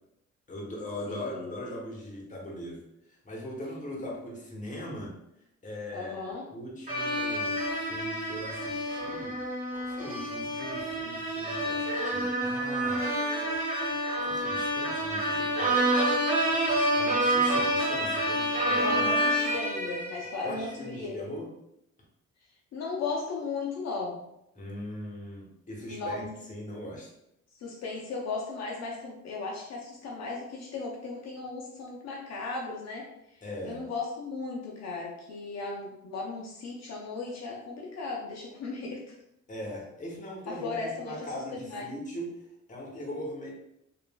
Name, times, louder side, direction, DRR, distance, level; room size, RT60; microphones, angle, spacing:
voice 1, 0.5-5.1 5.6-13.0 14.2-16.0 16.6-19.0 20.4-21.5 24.5-27.1 33.4-33.8 39.5-43.5, left 1 dB, 25° left, -2 dB, 0.9 m, -40 dB
voice 2, 1.1-1.5 5.9-6.5 18.7-21.3 22.7-24.2 25.9-26.3 27.5-39.2 40.5-41.3 41.7-41.8, left 3 dB, 60° left, -2 dB, 0.6 m, -36 dB
sound 1, 6.9-20.6, right 1 dB, 25° right, 1.1 m, -28 dB
3.0 x 2.4 x 2.2 m, 0.82 s
cardioid pair, 90°, 30 cm